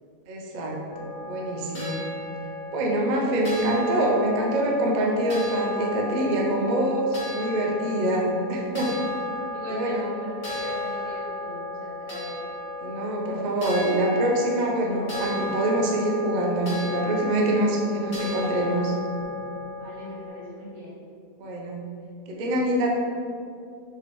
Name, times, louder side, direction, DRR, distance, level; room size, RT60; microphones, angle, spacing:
voice 1, 0.3-2.0 2.7-8.9 9.7-10.1 12.8-18.9 21.4-21.9 22.3-23.0, right 1 dB, 85° right, -2 dB, 0.4 m, -25 dB
sound 1, 0.9-20.3, left 2 dB, 60° left, 1.5 m, -34 dB
voice 2, 9.5-12.5 19.8-21.0, equal, 70° right, -9 dB, 1.8 m, -40 dB
4.8 x 3.0 x 3.0 m, 2.4 s
omnidirectional pair, 1.6 m